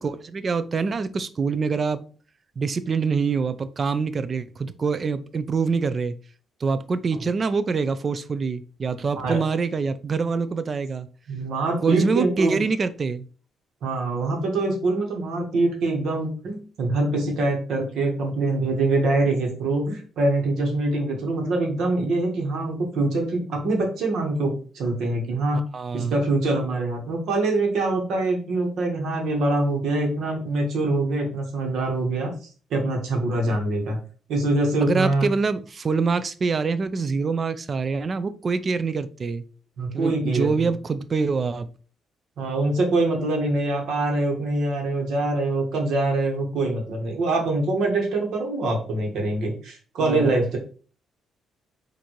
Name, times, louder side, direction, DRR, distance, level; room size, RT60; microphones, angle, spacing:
voice 1, 0.0-2.0 2.6-6.2 6.6-11.1 11.8-13.3 25.7-26.2 33.5-33.6 34.8-39.4 39.9-41.7 50.0-50.4, right 4 dB, 40° right, 0.4 m, -25 dB
voice 2, 11.3-12.5 13.8-25.6 25.9-32.3 32.7-34.0 34.3-35.3 39.8-40.7 42.4-50.6, right 2 dB, 75° right, 1.2 m, -24 dB
4.4 x 2.6 x 3.0 m
cardioid pair, 90°, 0 cm